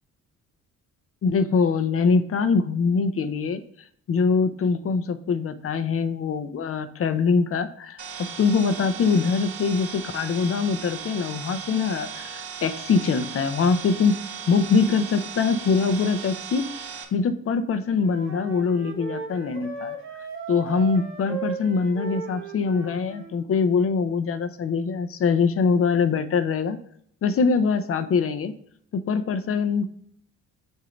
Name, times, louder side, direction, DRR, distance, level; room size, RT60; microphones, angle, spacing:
voice 1, 1.2-3.6 4.1-14.2 14.5-16.7 17.1-19.9 20.5-26.8 27.2-28.5 28.9-29.9, left 5 dB, 45° left, 10 dB, 0.7 m, -23 dB
sound 1, 8.0-17.0, right 7 dB, 70° right, 1.5 m, -37 dB
Wind instrument woodwind instrument, 18.0-23.3, right 4 dB, 45° right, 1.8 m, -36 dB
7.7 x 2.8 x 5.0 m, 0.66 s
cardioid pair, 90°, 30 cm